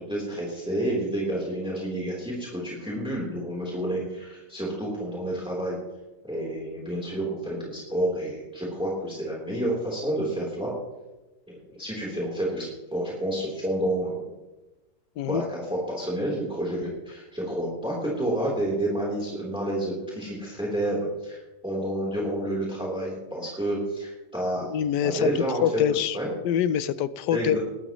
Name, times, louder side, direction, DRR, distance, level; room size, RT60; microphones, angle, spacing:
voice 1, 0.0-5.8 6.2-10.7 11.5-14.3 15.3-24.7 25.0-25.8 26.1-26.3 27.3-27.6, right 1 dB, 5° right, -4 dB, 3.4 m, -29 dB
voice 2, 24.7-25.3 25.6-26.2 26.4-27.6, left 9 dB, 85° left, 15 dB, 1.3 m, -25 dB
20.0 x 12.5 x 3.1 m, 1.1 s
omnidirectional pair, 1.8 m